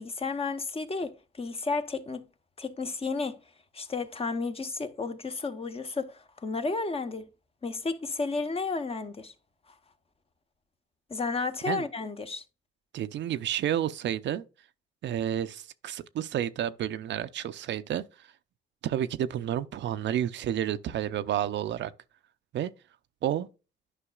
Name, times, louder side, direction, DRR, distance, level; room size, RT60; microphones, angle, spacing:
voice 1, 0.0-2.2 2.6-3.4 3.7-7.3 7.6-9.3 11.1-12.4, left 4 dB, 30° left, 0.9 m, -32 dB
voice 2, 12.9-14.4 15.0-18.3 18.8-21.9 22.5-22.7 23.2-23.5, right 10 dB, 65° right, 0.6 m, -30 dB
9.9 x 5.5 x 2.4 m
cardioid pair, 90°, 20 cm